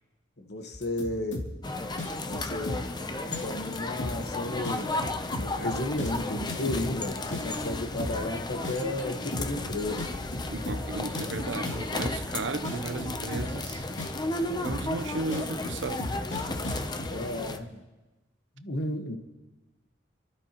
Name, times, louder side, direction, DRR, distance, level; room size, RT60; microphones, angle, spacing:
voice 1, 0.4-1.4 2.3-2.8 3.4-4.9 5.3-10.1 17.1-17.8 18.6-19.2, left 1 dB, 60° left, 1.3 m, -33 dB
sound 1, 0.7-1.7 2.0-3.0 3.3-3.7 4.0-4.3 4.6-7.0 7.3-8.3 8.6-9.0 9.3-9.7 10.0-12.3 12.6-13.7 14.0-14.3 14.6-15.0 15.3-17.1, left 1 dB, 90° left, 2.6 m, -35 dB
sound 2, 1.6-17.6, left 2 dB, 25° left, 0.6 m, -34 dB
voice 2, 10.5-13.8 14.6-16.1, right 3 dB, 80° right, 0.7 m, -35 dB
28.5 x 12.5 x 3.0 m
head